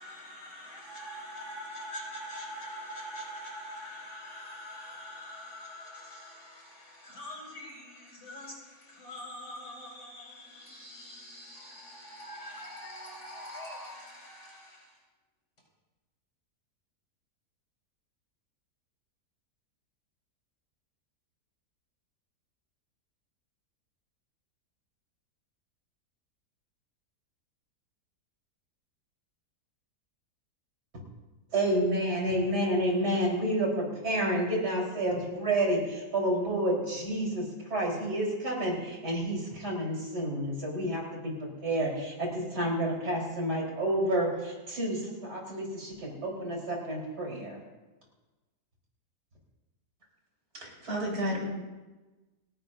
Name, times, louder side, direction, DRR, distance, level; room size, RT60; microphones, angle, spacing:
voice 1, 0.0-14.9, equal, 80° left, 5.4 m, -44 dB
voice 2, 31.5-37.4 37.7-47.6, right 1 dB, 85° right, 5.1 m, -29 dB
voice 3, 50.5-51.4, equal, 70° right, 5.5 m, -32 dB
29.5 x 11.5 x 2.7 m
omnidirectional pair, 1.7 m